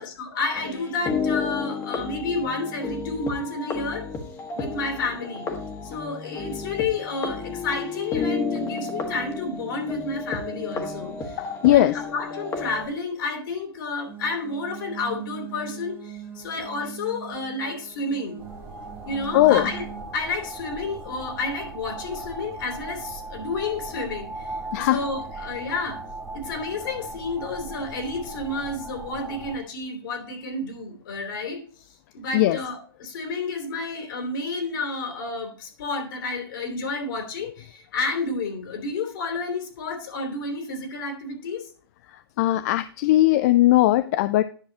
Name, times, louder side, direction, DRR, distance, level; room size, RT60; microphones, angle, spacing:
voice 1, 0.0-4.1 4.5-5.5 5.8-11.4 11.6-18.4 19.1-19.8 20.1-26.0 26.3-31.6 32.1-41.7, left 3 dB, 60° left, 4 dB, 3.0 m, -30 dB
sound 1, 0.6-12.9, left 4 dB, 20° left, 1.6 m, -31 dB
voice 2, 11.4-12.0 19.3-19.7 24.7-25.0 32.3-32.6 42.4-44.4, left 15 dB, 40° left, 14 dB, 0.4 m, -19 dB
sound 2, 14.0-20.0, right 11 dB, 15° right, 1.5 m, -41 dB
sound 3, 18.4-29.6, right 2 dB, ahead, 1.7 m, -38 dB
10.5 x 6.4 x 2.8 m, 0.42 s
hypercardioid pair, 125°, 13 cm